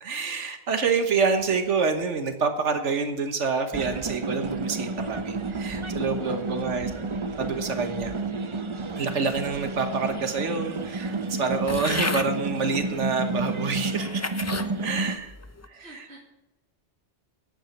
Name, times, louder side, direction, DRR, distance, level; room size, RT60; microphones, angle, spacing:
voice 1, 0.0-7.0 7.4-8.1 9.0-14.2 14.8-15.3 15.7-16.0, right 5 dB, 85° right, 7 dB, 1.5 m, -27 dB
sound 1, 3.7-15.2, right 3 dB, 30° right, 0.6 m, -31 dB
voice 2, 6.2-6.7 15.7-16.3, right 2 dB, 65° right, -3 dB, 2.5 m, -45 dB
sound 2, 11.7-12.3 13.1-13.2 13.9-14.7 15.3-15.7, left 3 dB, 20° left, 0.4 m, -31 dB
10.0 x 8.9 x 7.2 m, 0.98 s
omnidirectional pair, 1.2 m